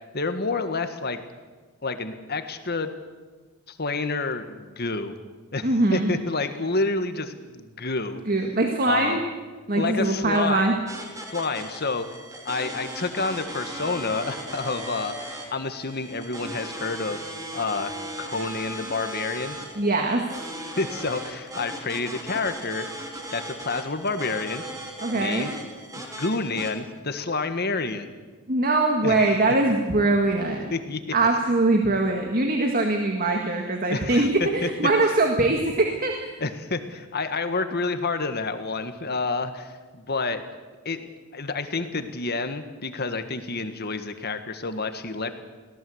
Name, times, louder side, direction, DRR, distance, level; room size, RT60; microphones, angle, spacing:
voice 1, 0.1-1.2 1.8-2.9 3.7-5.2 5.5-8.2 8.9-9.2 9.7-10.7 11.3-12.1 12.4-17.2 17.5-17.9 18.2-19.6 20.8-22.9 23.3-24.6 25.1-25.5 25.9-28.1 29.0-29.2 30.7-31.0 33.9-34.3 34.6-34.7 35.0-35.1 36.4-40.4 40.8-45.3, left 3 dB, 45° left, 9 dB, 1.7 m, -29 dB
voice 2, 5.6-6.1 8.3-9.3 9.7-10.8 19.8-20.3 25.0-25.6 28.5-30.6 31.1-36.3, right 2 dB, 40° right, 3 dB, 1.9 m, -22 dB
sound 1, 10.9-26.7, right 1 dB, 15° right, 3.2 m, -37 dB
24.0 x 17.5 x 8.0 m, 1.4 s
head